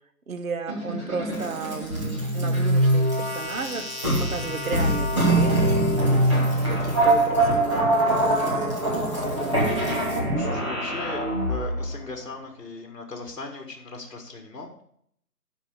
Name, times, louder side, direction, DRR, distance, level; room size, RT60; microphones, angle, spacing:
voice 1, 0.3-3.8 4.3-6.2 6.7-9.9, right 5 dB, 60° right, 9 dB, 1.0 m, -34 dB
sound 1, 0.7-11.9, right 1 dB, 20° right, 1.7 m, -23 dB
voice 2, 10.1-14.8, left 3 dB, 55° left, 2 dB, 1.9 m, -38 dB
11.5 x 4.6 x 6.6 m, 0.68 s
hypercardioid pair, 180°, 47 cm